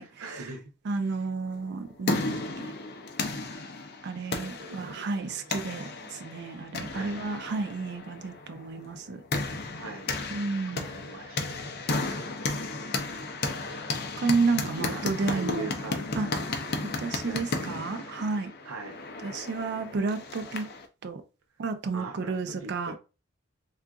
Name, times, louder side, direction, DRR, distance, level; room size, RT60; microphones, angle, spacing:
voice 1, 0.2-1.0 4.4-5.0 5.3-5.4 6.9-7.2 9.7-10.1 10.7-11.4 11.8-12.6 14.7-16.5 17.2-17.8 18.6-18.9 21.9-23.0, right 2 dB, 85° right, 0.7 m, -41 dB
voice 2, 0.8-2.7 4.0-9.2 10.3-10.9 14.2-15.8 16.2-16.3 17.0-18.5 19.2-20.7 21.0-21.2 21.6-23.0, right 4 dB, 55° right, 0.4 m, -31 dB
sound 1, 1.6-20.9, left 3 dB, 50° left, 0.5 m, -34 dB
3.7 x 2.4 x 2.3 m
head